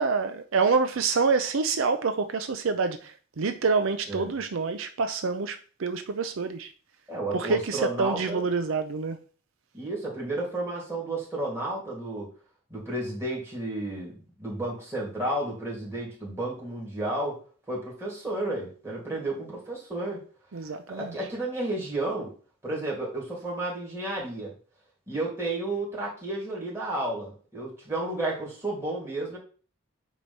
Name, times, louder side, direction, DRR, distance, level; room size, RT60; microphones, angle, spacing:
voice 1, 0.0-6.7 7.3-9.2 20.5-21.1, right 4 dB, 75° right, 0.6 m, -27 dB
voice 2, 7.1-8.4 9.7-12.3 12.7-17.4 17.7-20.2 20.7-22.3 22.6-24.5 25.1-29.4, right 2 dB, 10° right, 2.7 m, -32 dB
8.4 x 3.1 x 5.5 m
head